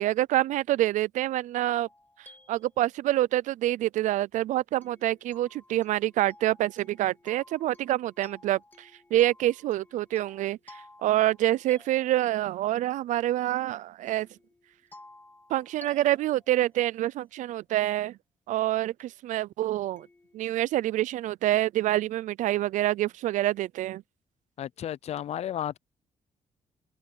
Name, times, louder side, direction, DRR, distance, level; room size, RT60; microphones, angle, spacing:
voice 1, 0.0-1.9 2.2-14.3 15.5-18.2 18.5-20.1 20.3-24.0, right 14 dB, 85° right, 0.4 m, -27 dB
sound 1, 1.8-3.3 4.8-12.7 14.1-17.4 19.0-19.1 20.0-20.4, left 2 dB, 15° left, 2.8 m, -56 dB
voice 2, 24.6-25.8, left 10 dB, 60° left, 0.5 m, -33 dB
cardioid pair, 110°, 12 cm